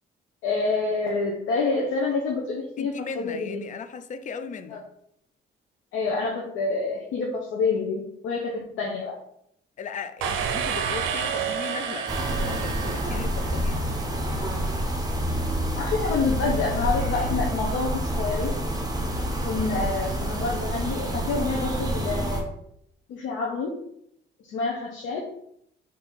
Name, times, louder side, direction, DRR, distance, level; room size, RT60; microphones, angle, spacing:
voice 1, 0.4-3.6 4.7-4.8 5.9-9.1 15.8-18.5 19.4-22.5 23.1-23.7 24.5-25.2, left 4 dB, 85° left, 0.7 m, -27 dB
voice 2, 2.8-4.8 9.8-12.1 12.4-13.9, left 6 dB, 40° left, 0.4 m, -37 dB
sound 1, 10.2-14.0, right 7 dB, 90° right, 0.5 m, -30 dB
sound 2, 12.1-22.4, equal, 20° right, 0.8 m, -28 dB
3.6 x 2.7 x 4.0 m
cardioid pair, 90°, 20 cm